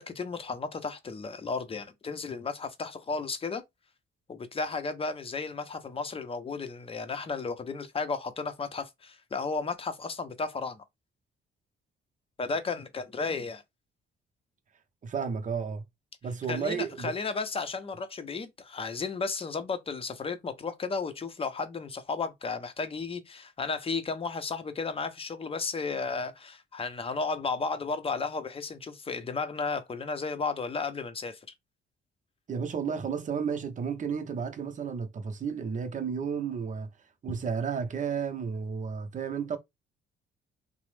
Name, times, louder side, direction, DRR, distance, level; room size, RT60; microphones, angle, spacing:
voice 1, 0.0-3.6 4.3-10.8 12.4-13.6 16.5-31.4, left 4 dB, 30° left, 0.6 m, -33 dB
voice 2, 15.0-15.8 16.2-17.1 32.5-36.9 37.2-39.6, right 6 dB, 40° right, 0.7 m, -32 dB
2.9 x 2.0 x 3.2 m
cardioid pair, 90°, 20 cm